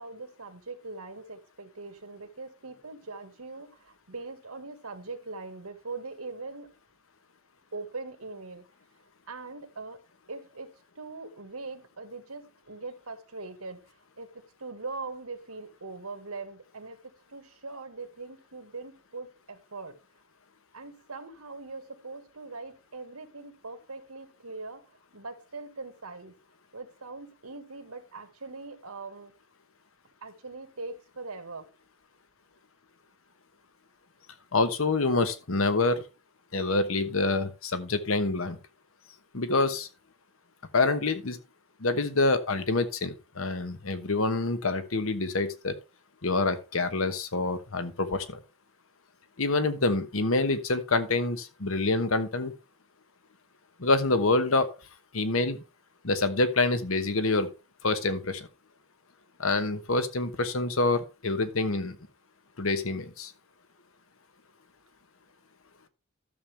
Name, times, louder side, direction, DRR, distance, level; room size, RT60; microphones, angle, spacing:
voice 1, 0.0-6.7 7.7-8.7 9.3-10.0 10.3-13.8 14.2-20.0 20.7-26.3 26.7-29.3 30.2-31.7, right 3 dB, 85° right, 1.7 m, -41 dB
voice 2, 34.5-36.1 36.5-38.6 39.3-39.9 40.7-41.4 41.8-45.7 46.2-48.4 49.4-52.5 53.8-54.7 55.1-55.6 56.0-57.5 57.8-58.5 59.4-62.0 62.6-63.3, left 3 dB, 70° left, 1.1 m, -26 dB
12.5 x 7.1 x 3.4 m
head